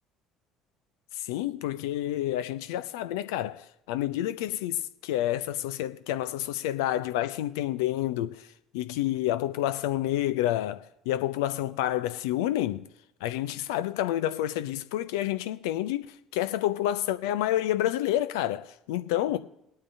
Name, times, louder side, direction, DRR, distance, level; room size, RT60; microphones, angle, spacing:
voice 1, 1.1-8.5 8.7-12.8 13.2-19.4, left 13 dB, 65° left, 0.6 m, -29 dB
22.0 x 8.8 x 2.7 m
figure-of-eight pair, 60°, 2 cm